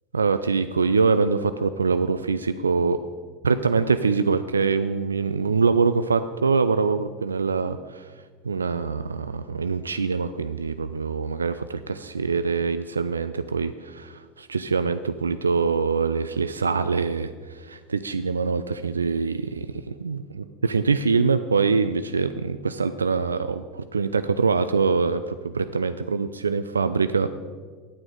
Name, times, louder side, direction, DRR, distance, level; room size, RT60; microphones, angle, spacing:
voice 1, 0.1-3.0 3.4-8.0 8.4-17.3 17.6-20.2 20.6-27.4, right 4 dB, 80° right, 12 dB, 0.3 m, -24 dB
9.6 x 9.0 x 5.0 m, 1.5 s
figure-of-eight pair, 80°, 0 cm